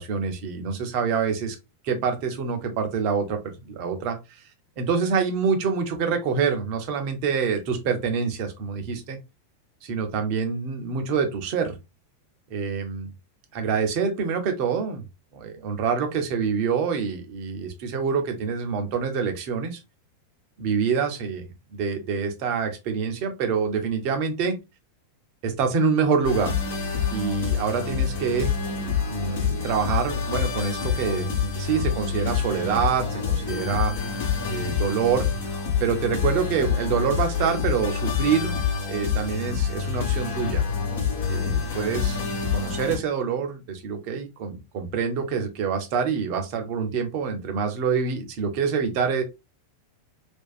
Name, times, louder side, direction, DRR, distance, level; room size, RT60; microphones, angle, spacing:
voice 1, 0.0-1.6 1.8-4.4 4.8-9.2 9.8-11.8 12.5-13.1 13.5-15.0 15.3-19.8 20.6-24.6 25.4-26.5 27.1-28.5 29.1-33.9 34.5-35.3 35.8-38.5 38.9-40.6 41.3-42.2 42.5-49.2, right 6 dB, 45° right, 0.6 m, -26 dB
sound 1, 26.2-43.0, left 6 dB, 60° left, 1.0 m, -27 dB
2.5 x 2.3 x 2.2 m
figure-of-eight pair, 90°, 0 cm